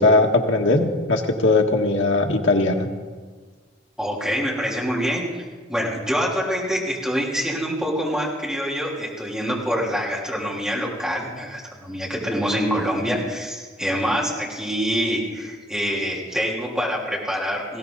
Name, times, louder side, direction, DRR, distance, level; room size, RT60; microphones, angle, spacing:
voice 1, 0.0-2.9, left 2 dB, 80° left, 1 dB, 1.6 m, -19 dB
voice 2, 4.0-5.4 5.7-17.8, equal, 5° right, -4 dB, 3.5 m, -25 dB
20.0 x 16.5 x 4.0 m, 1.5 s
head